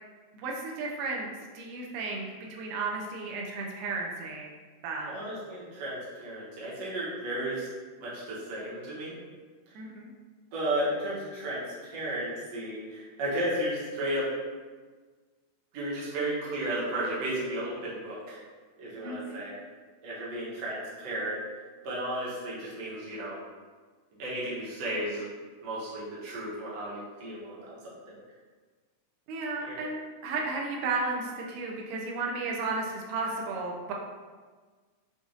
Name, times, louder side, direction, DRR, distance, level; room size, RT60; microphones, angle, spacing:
voice 1, 0.3-1.3 1.5-4.5 4.8-5.1 9.8-10.1 19.0-19.4 29.3-33.9, right 3 dB, 90° right, -1 dB, 2.2 m, -33 dB
voice 2, 5.1-7.7 8.0-9.2 9.7-9.8 10.5-14.3 15.7-18.4 18.8-19.6 20.0-21.4 21.8-23.4 24.2-25.3 25.6-28.0 29.7-29.8, right 1 dB, 65° right, -7 dB, 1.9 m, -34 dB
6.3 x 2.4 x 2.6 m, 1.4 s
omnidirectional pair, 3.7 m